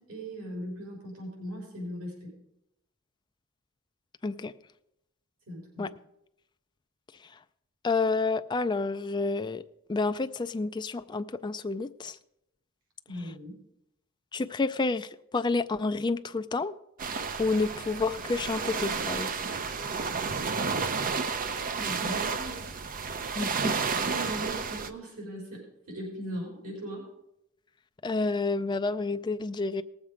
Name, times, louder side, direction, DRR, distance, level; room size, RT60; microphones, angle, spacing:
voice 1, 0.0-2.3 5.5-5.9 13.1-13.6 21.6-22.8 23.7-27.1, right 1 dB, 80° right, 4.3 m, -39 dB
voice 2, 4.2-4.5 5.8-5.9 7.2-7.3 7.8-9.6 9.9-12.2 14.3-16.8 17.4-19.3 23.4-23.8 28.0-29.8, left 3 dB, 20° left, 0.3 m, -29 dB
sound 1, 17.0-24.9, right 5 dB, 40° right, 0.6 m, -31 dB
18.5 x 7.3 x 4.9 m
head